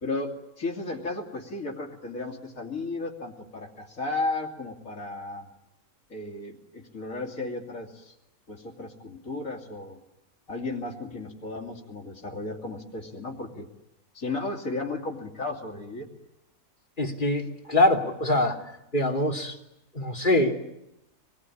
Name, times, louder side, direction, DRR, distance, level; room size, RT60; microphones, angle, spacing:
voice 1, 0.0-5.5 6.1-8.1 8.5-10.0 10.5-13.7 14.1-16.1, left 2 dB, 80° left, 0 dB, 3.2 m, -34 dB
voice 2, 17.0-18.6 18.9-19.6 19.9-20.5, left 1 dB, 35° left, 2 dB, 3.2 m, -23 dB
26.0 x 20.5 x 9.9 m, 0.88 s
omnidirectional pair, 1.4 m